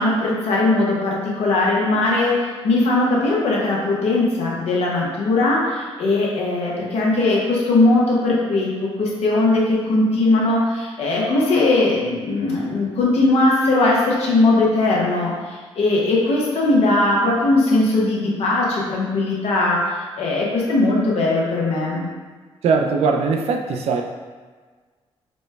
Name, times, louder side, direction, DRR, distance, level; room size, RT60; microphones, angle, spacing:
voice 1, 0.0-2.3 2.6-15.3 15.7-19.8 20.2-22.1, left 2 dB, 75° left, -3 dB, 1.0 m, -19 dB
voice 2, 22.6-24.0, right 5 dB, 75° right, 3 dB, 0.4 m, -20 dB
4.2 x 2.2 x 3.2 m, 1.5 s
cardioid pair, 80°, 11 cm